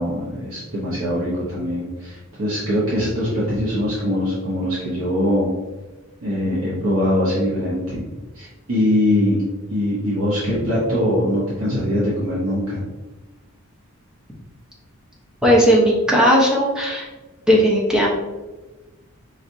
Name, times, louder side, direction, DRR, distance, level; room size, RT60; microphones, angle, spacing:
voice 1, 0.0-5.5 6.2-8.0 8.3-9.4 9.7-12.8, left 1 dB, 90° right, -8 dB, 1.1 m, -22 dB
voice 2, 15.4-17.1 17.5-18.1, equal, 5° right, -4 dB, 0.8 m, -16 dB
4.9 x 3.1 x 2.7 m, 1.2 s
head